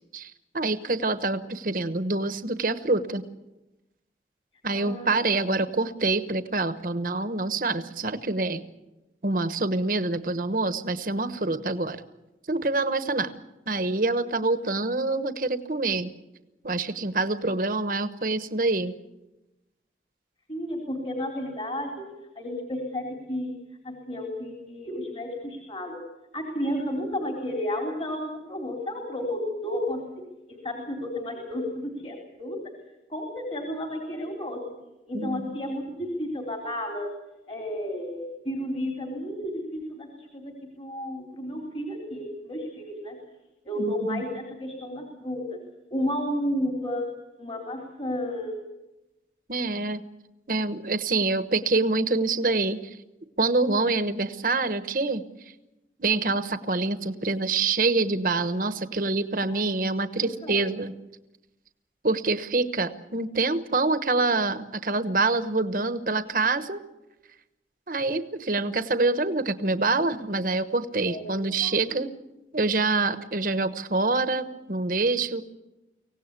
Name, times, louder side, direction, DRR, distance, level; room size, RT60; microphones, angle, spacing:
voice 1, 0.1-3.2 4.6-8.6 9.2-12.0 12.5-13.3 13.7-16.1 16.6-18.9 35.1-35.5 43.8-44.2 49.5-50.0 50.5-53.0 53.4-55.5 56.0-60.9 62.0-66.8 67.9-72.1 72.5-75.4, right 3 dB, 50° right, 10 dB, 1.1 m, -26 dB
voice 2, 4.7-5.1 20.5-22.0 22.4-23.5 23.8-26.0 26.3-30.0 30.6-32.6 33.1-34.6 35.1-37.1 37.5-43.2 43.6-45.4 45.9-47.1 47.4-48.6 59.5-59.6 60.1-60.6 71.1-72.0, left 1 dB, 35° left, 1 dB, 3.5 m, -32 dB
24.5 x 17.5 x 8.3 m, 0.99 s
head